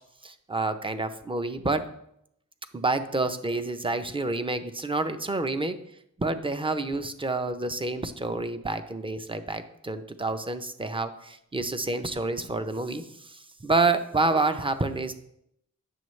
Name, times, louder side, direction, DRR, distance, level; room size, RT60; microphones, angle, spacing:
voice 1, 0.2-1.8 2.7-5.8 6.2-15.2, right 3 dB, 15° right, 10 dB, 0.6 m, -28 dB
9.3 x 6.9 x 3.2 m, 0.75 s
wide cardioid pair, 85°, 33 cm